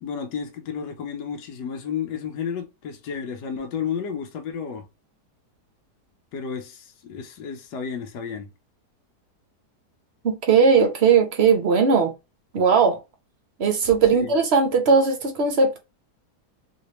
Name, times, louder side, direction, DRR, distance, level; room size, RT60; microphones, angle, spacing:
voice 1, 0.0-4.9 6.3-8.5 14.1-14.3, left 7 dB, 80° left, 1.3 m, -32 dB
voice 2, 10.2-12.1 12.5-13.0 13.6-15.8, right 5 dB, 50° right, 0.9 m, -18 dB
3.2 x 3.2 x 2.8 m
omnidirectional pair, 1.7 m